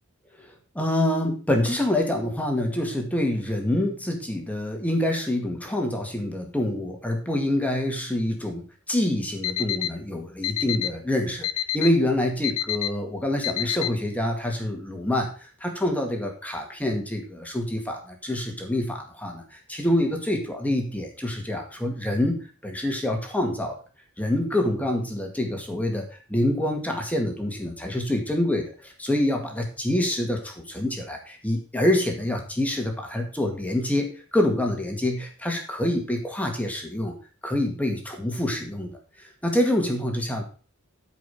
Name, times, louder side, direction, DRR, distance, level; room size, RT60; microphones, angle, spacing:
voice 1, 0.4-11.5 11.7-23.7 24.2-37.2 37.4-40.4, left 1 dB, 5° left, 2 dB, 2.1 m, -26 dB
Alarm, 9.4-9.9 10.4-10.9 11.4-11.9 12.4-12.9 13.4-13.9, left 13 dB, 80° left, 0.6 m, -26 dB
12.0 x 5.2 x 5.5 m, 0.37 s
head